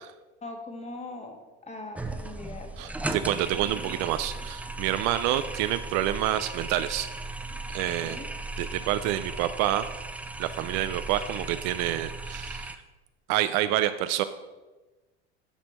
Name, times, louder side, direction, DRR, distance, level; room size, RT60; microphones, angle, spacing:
voice 1, 0.4-1.4 1.6-2.7 8.0-8.3, left 2 dB, 20° left, 4 dB, 1.5 m, -40 dB
sound 1, 2.0-12.8, right 2 dB, 5° right, 0.5 m, -36 dB
voice 2, 2.8-7.1 7.7-8.2 8.6-9.9 10.4-12.7 13.3-14.2, right 13 dB, 55° right, 12 dB, 0.5 m, -28 dB
12.5 x 4.3 x 4.2 m, 1.2 s
hypercardioid pair, 90°, 33 cm